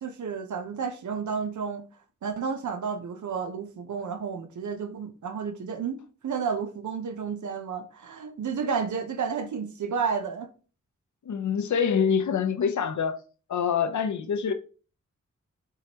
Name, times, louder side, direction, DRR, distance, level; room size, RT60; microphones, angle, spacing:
voice 1, 0.0-1.8 2.2-10.5, right 6 dB, 75° right, 0.7 m, -31 dB
voice 2, 11.2-13.2 13.5-14.5, left 7 dB, 75° left, 0.6 m, -25 dB
4.7 x 3.1 x 2.8 m
cardioid pair, 55°, 30 cm